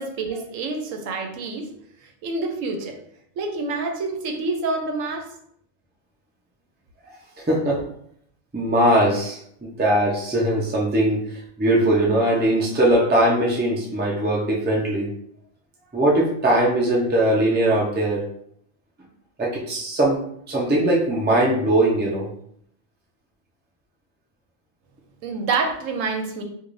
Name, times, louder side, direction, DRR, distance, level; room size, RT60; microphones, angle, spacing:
voice 1, 0.0-1.7 2.2-3.0 3.4-5.3 25.2-26.4, right 3 dB, 80° right, 4 dB, 1.0 m, -27 dB
voice 2, 7.5-7.8 8.5-15.1 15.9-18.2 19.4-20.2 20.5-22.3, right 1 dB, 10° right, -3 dB, 0.5 m, -20 dB
4.7 x 2.5 x 2.6 m, 0.69 s
omnidirectional pair, 1.4 m